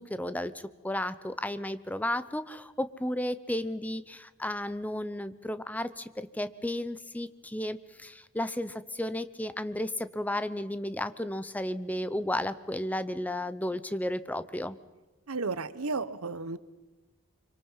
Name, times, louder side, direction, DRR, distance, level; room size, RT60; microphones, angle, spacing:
voice 1, 0.0-14.8, left 1 dB, 5° left, 13 dB, 0.7 m, -33 dB
voice 2, 15.3-16.6, right 3 dB, 90° right, 15 dB, 1.0 m, -33 dB
26.0 x 25.0 x 5.7 m, 1.2 s
head